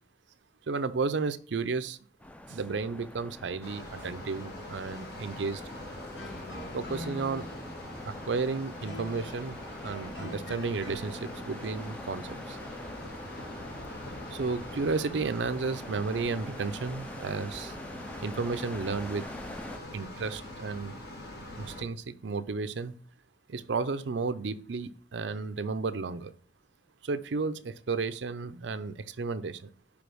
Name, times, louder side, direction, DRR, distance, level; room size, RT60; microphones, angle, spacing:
voice 1, 0.7-2.0 2.5-5.6 6.7-7.5 8.0-12.6 14.3-17.8 18.2-19.3 19.9-21.0 21.6-22.9 23.5-26.3 27.0-29.7, right 4 dB, 75° right, 12 dB, 0.5 m, -33 dB
sound 1, 2.2-19.8, left 1 dB, 5° left, 0.4 m, -45 dB
sound 2, 3.6-21.8, left 1 dB, 60° left, 1.7 m, -44 dB
sound 3, 6.1-11.5, left 1 dB, 85° left, 2.6 m, -44 dB
5.2 x 5.2 x 6.1 m, 0.44 s
head